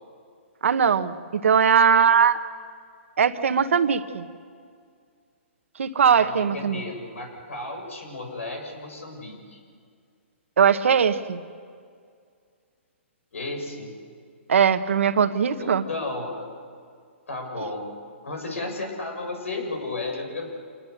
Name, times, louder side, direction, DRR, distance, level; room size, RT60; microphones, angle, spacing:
voice 1, 0.6-2.4 3.2-4.3 5.8-6.8 10.6-11.4 14.5-15.8, right 7 dB, 75° right, 10 dB, 1.4 m, -20 dB
voice 2, 6.0-9.6 13.3-13.9 15.6-16.6 17.3-17.9 18.2-20.5, left 2 dB, 85° left, 3 dB, 7.1 m, -33 dB
27.5 x 20.0 x 6.7 m, 2.2 s
hypercardioid pair, 140°, 7 cm